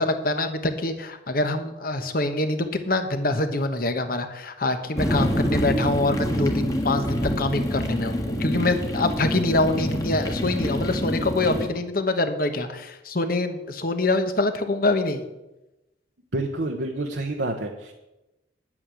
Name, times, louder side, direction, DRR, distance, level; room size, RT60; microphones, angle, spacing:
voice 1, 0.0-15.3, left 2 dB, 50° left, 8 dB, 1.2 m, -25 dB
sound 1, 5.0-11.7, equal, 20° left, 1.5 m, -26 dB
voice 2, 16.3-17.9, right 2 dB, 70° right, 1 dB, 1.1 m, -28 dB
10.0 x 8.7 x 7.7 m, 0.98 s
head